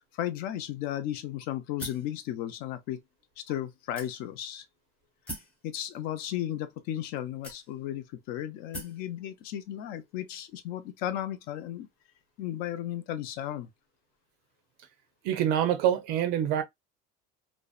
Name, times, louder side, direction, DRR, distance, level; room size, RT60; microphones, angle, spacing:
voice 1, 0.0-3.0 3.5-4.6 5.6-11.9 12.4-13.7, left 12 dB, 50° left, 0.5 m, -35 dB
sound 1, 1.8-2.1 2.9-3.0 4.0-4.5 5.3-5.6 6.5-6.6 7.4-8.0 8.7-9.0, right 1 dB, 5° left, 0.8 m, -41 dB
voice 2, 15.2-16.6, right 10 dB, 55° right, 0.5 m, -25 dB
2.6 x 2.0 x 2.3 m
cardioid pair, 165°, 19 cm